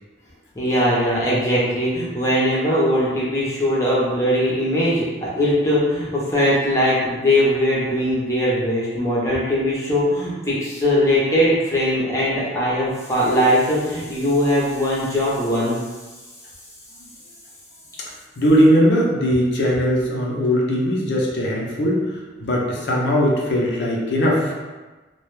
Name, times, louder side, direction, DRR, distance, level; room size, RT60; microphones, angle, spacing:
voice 1, 0.6-15.8, equal, 15° left, -7 dB, 0.6 m, -20 dB
voice 2, 18.4-22.0 22.4-24.5, equal, 70° left, -2 dB, 0.5 m, -19 dB
2.2 x 2.1 x 3.1 m, 1.2 s
head